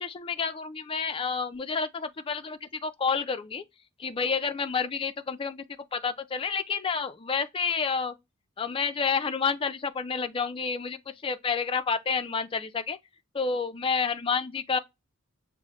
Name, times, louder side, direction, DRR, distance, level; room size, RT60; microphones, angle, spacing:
voice 1, 0.0-3.6 4.0-5.7 5.9-8.1 8.6-11.0 11.2-13.0 13.3-14.8, left 5 dB, 25° left, 0.3 m, -29 dB
6.1 x 2.0 x 3.0 m
head